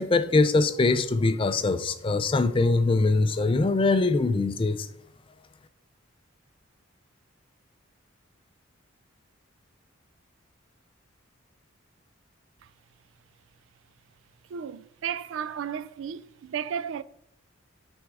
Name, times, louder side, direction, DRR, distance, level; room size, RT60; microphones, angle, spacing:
voice 1, 0.0-4.9, left 3 dB, 25° left, 0.4 m, -23 dB
voice 2, 14.5-17.0, right 8 dB, 65° right, 0.3 m, -33 dB
8.3 x 3.6 x 4.6 m
head